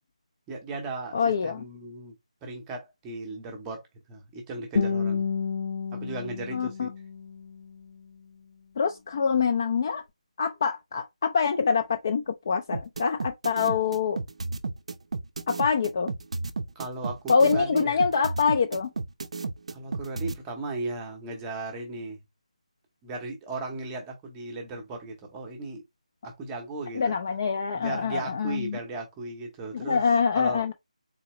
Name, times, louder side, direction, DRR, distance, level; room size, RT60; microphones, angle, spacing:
voice 1, 0.5-1.2 1.4-2.1 2.4-5.2 5.9-6.9 16.7-18.1 19.7-22.2 23.0-25.8 26.2-27.2 27.7-30.0 30.3-30.7, right 2 dB, 10° right, 0.7 m, -36 dB
voice 2, 1.1-1.6 6.5-6.9 8.8-10.0 10.4-14.2 15.5-16.1 17.3-18.9 27.0-28.8 29.7-30.7, left 5 dB, 30° left, 0.3 m, -25 dB
Guitar, 4.8-7.8, left 5 dB, 60° left, 0.9 m, -30 dB
sound 1, 12.7-20.4, right 3 dB, 60° right, 0.5 m, -32 dB
3.8 x 2.9 x 2.9 m
figure-of-eight pair, 170°, 4 cm